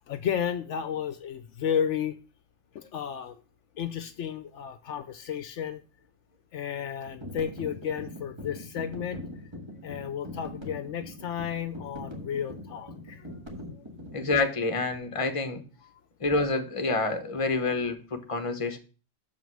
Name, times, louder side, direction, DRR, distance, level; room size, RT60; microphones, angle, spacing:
voice 1, 0.1-2.2 2.7-3.4 3.8-5.8 6.5-9.2 9.8-13.4 13.7-13.8 15.8-16.0, left 8 dB, 70° left, 10 dB, 0.9 m, -33 dB
sound 1, 7.1-14.4, left 1 dB, 20° right, 1.5 m, -42 dB
voice 2, 14.1-15.6 16.2-18.8, left 3 dB, 25° left, 6 dB, 1.1 m, -28 dB
6.9 x 5.2 x 6.1 m, 0.36 s
omnidirectional pair, 1.3 m